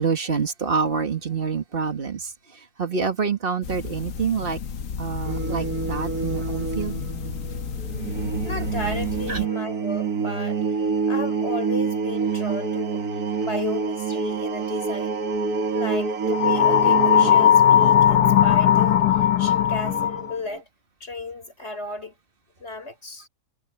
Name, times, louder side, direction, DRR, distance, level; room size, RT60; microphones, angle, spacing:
voice 1, 0.0-2.3 2.8-4.6 5.0-7.0 9.3-9.5, right 5 dB, 35° right, 1.9 m, -26 dB
sound 1, 3.6-9.5, left 6 dB, 60° left, 1.3 m, -32 dB
sound 2, 5.2-20.6, right 5 dB, 65° right, 2.3 m, -28 dB
voice 2, 8.4-10.6 11.1-13.0 13.4-15.2 15.7-20.6 21.0-22.1 22.6-23.3, left 2 dB, 40° left, 4.9 m, -34 dB
sound 3, 16.3-20.3, left 9 dB, 90° left, 1.4 m, -17 dB
omnidirectional pair, 1.7 m